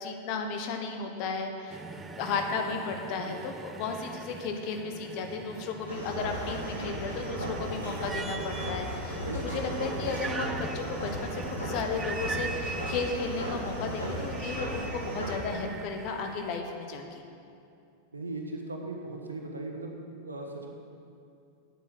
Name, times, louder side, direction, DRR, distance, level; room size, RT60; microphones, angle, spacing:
voice 1, 0.0-1.8 2.2-17.2, left 4 dB, 45° left, 4 dB, 1.0 m, -34 dB
sound 1, 1.7-16.6, right 4 dB, 15° right, 0.4 m, -41 dB
sound 2, 5.9-15.4, equal, 80° left, 2.7 m, -36 dB
voice 2, 9.2-10.2 18.1-20.7, right 2 dB, 75° right, 2 dB, 1.2 m, -38 dB
8.5 x 8.1 x 6.0 m, 2.6 s
figure-of-eight pair, 90°, 0 cm